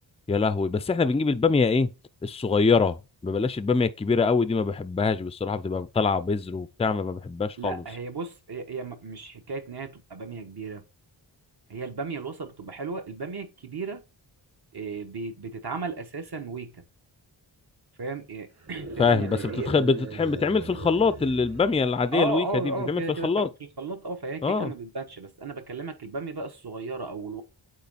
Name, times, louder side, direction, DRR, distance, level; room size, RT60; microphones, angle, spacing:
voice 1, 0.3-1.9 2.2-3.0 3.2-7.8 19.0-19.4 19.7-22.4 22.9-23.5 24.4-24.7, left 4 dB, 15° left, 0.4 m, -24 dB
voice 2, 7.6-10.8 11.7-14.0 14.7-16.8 18.0-19.8 22.1-27.4, right 3 dB, 50° right, 1.3 m, -34 dB
sound 1, 18.6-22.2, right 3 dB, 30° right, 1.1 m, -39 dB
8.4 x 3.1 x 4.1 m
wide cardioid pair, 80°, 48 cm